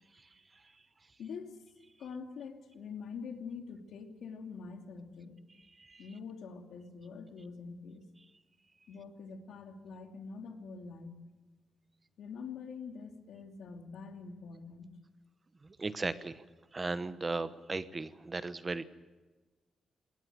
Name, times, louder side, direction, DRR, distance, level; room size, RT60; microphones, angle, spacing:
voice 1, 1.2-1.6 2.0-5.4 6.0-8.1 8.9-11.2 12.2-14.9, left 5 dB, 80° left, 5 dB, 2.7 m, -45 dB
voice 2, 15.6-16.4 16.7-18.8, right 3 dB, 25° right, 13 dB, 1.0 m, -36 dB
21.0 x 18.0 x 9.1 m, 1.3 s
cardioid pair, 130°, 0 cm